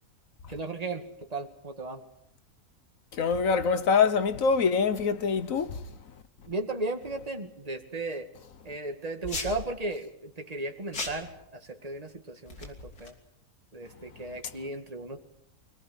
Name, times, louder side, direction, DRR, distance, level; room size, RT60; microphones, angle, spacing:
voice 1, 0.5-2.0 6.5-8.3 8.6-13.1 13.7-15.2, right 2 dB, 25° right, 2.3 m, -35 dB
voice 2, 3.2-5.7, left 5 dB, 65° left, 1.5 m, -24 dB
sound 1, 9.2-9.7 10.9-11.3 12.5-13.1, left 3 dB, 85° left, 3.9 m, -36 dB
25.5 x 18.0 x 9.5 m
omnidirectional pair, 1.6 m